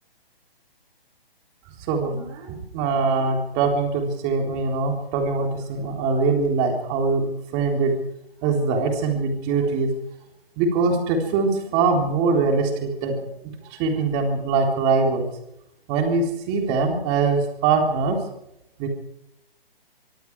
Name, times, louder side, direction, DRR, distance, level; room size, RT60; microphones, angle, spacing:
voice 1, 1.9-7.3 7.5-7.9 8.4-9.9 10.6-13.2 13.7-15.3 15.9-18.2 18.8-18.9, right 4 dB, 20° right, 3 dB, 3.7 m, -22 dB
24.5 x 23.0 x 4.8 m, 0.80 s
hypercardioid pair, 170°, 30 cm